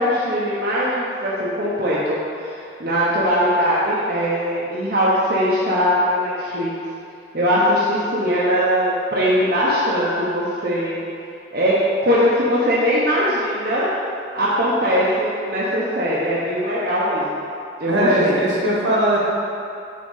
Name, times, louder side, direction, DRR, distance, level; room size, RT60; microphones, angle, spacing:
voice 1, 0.0-6.7 7.3-11.0 11.5-13.9 14.3-17.4 17.8-18.4, equal, 55° right, -8 dB, 0.9 m, -20 dB
voice 2, 17.9-19.2, right 1 dB, 85° right, -5 dB, 1.4 m, -19 dB
7.4 x 3.8 x 4.0 m, 2.6 s
head